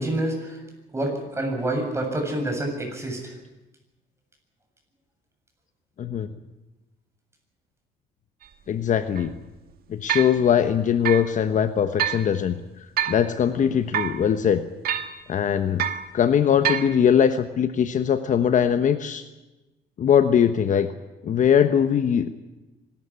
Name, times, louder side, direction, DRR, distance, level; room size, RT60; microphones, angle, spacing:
voice 1, 0.0-3.3, right 1 dB, 15° right, 2 dB, 7.5 m, -28 dB
sound 1, 8.4-8.5 9.2-9.3 10.1-10.4 11.1-11.3 12.0-12.2 13.0-13.3 13.9-14.2 14.8-15.2 15.8-16.1 16.6-16.9, right 10 dB, 65° right, 1.6 m, -26 dB
voice 2, 8.7-9.3 9.9-12.5 13.1-14.6 15.3-15.9 16.1-19.2 20.0-20.9 21.2-22.3, left 8 dB, 50° left, 9 dB, 1.2 m, -21 dB
24.5 x 13.5 x 9.9 m, 1.1 s
cardioid pair, 110°, 17 cm